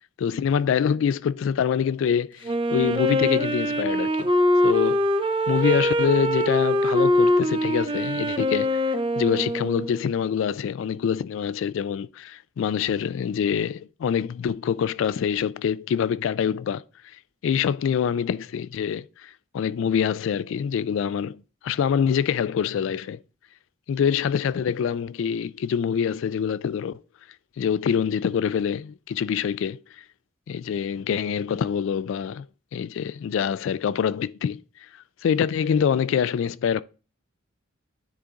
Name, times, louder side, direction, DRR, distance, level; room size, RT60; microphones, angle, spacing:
voice 1, 0.2-4.3 4.6-5.1 5.5-23.2 23.9-27.0 27.6-30.0 30.5-32.5 32.7-36.8, left 7 dB, 70° left, 0.3 m, -25 dB
Wind instrument woodwind instrument, 2.4-10.2, left 1 dB, 25° right, 0.6 m, -23 dB
9.7 x 3.7 x 3.8 m
head